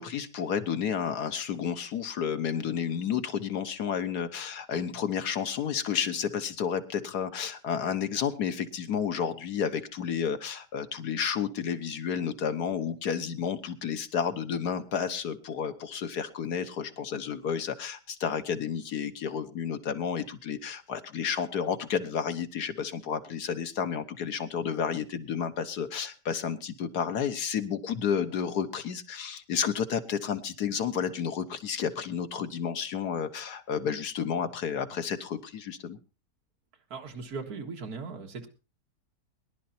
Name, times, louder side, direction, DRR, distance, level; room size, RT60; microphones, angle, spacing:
voice 1, 0.0-36.0, left 7 dB, 80° left, 9 dB, 1.7 m, -31 dB
voice 2, 36.9-38.5, right 4 dB, 70° right, 2 dB, 2.3 m, -38 dB
22.5 x 11.5 x 2.8 m, 0.31 s
omnidirectional pair, 1.7 m